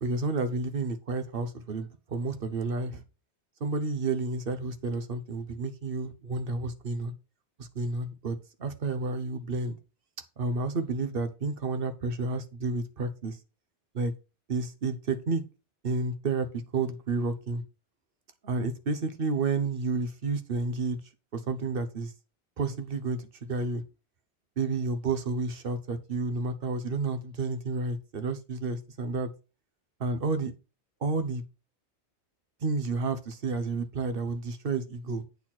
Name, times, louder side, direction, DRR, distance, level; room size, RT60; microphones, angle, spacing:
voice 1, 0.0-3.0 3.6-7.1 7.6-9.8 10.4-13.4 13.9-14.1 14.5-15.4 15.8-17.6 18.4-21.0 21.3-22.1 22.6-23.8 24.6-29.3 30.0-30.5 31.0-31.4 32.6-35.2, right 3 dB, 55° right, 1.2 m, -31 dB
8.5 x 4.3 x 6.0 m
omnidirectional pair, 1.2 m